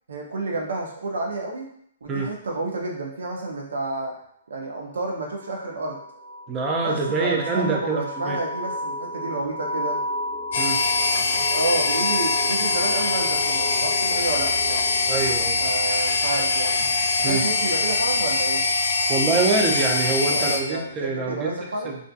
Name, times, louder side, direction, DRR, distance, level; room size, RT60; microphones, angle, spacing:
voice 1, 0.1-1.7 2.0-4.1 4.5-6.0 6.8-10.0 11.5-14.8 15.6-16.8 17.2-18.6 20.3-22.0, right 2 dB, 90° right, 0 dB, 0.5 m, -30 dB
sound 1, 5.4-19.8, equal, 55° right, 0.8 m, -34 dB
voice 2, 6.5-8.4 10.6-10.8 15.1-15.6 17.2-17.4 19.1-22.0, right 4 dB, 20° right, 0 dB, 0.4 m, -25 dB
sound 2, 10.5-20.6, left 3 dB, 60° left, 0.4 m, -23 dB
2.5 x 2.4 x 2.3 m, 0.68 s
hypercardioid pair, 155°, 0 cm